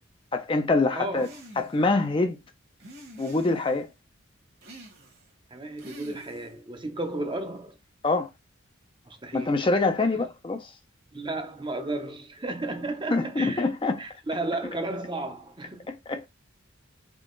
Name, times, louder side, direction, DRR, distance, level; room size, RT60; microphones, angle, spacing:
voice 1, 0.3-1.3 1.6-2.4 3.2-3.9 8.0-8.3 9.3-10.7 13.1-14.0 15.9-16.3, left 3 dB, 25° left, 0.4 m, -25 dB
voice 2, 0.9-1.3 5.5-7.8 9.1-9.6 11.1-13.7 14.0-15.9, right 2 dB, 25° right, 0.6 m, -33 dB
sound 1, 1.2-1.9 2.8-3.9 4.6-5.3 5.8-6.6, right 1 dB, 50° right, 1.3 m, -47 dB
3.7 x 2.8 x 3.8 m
head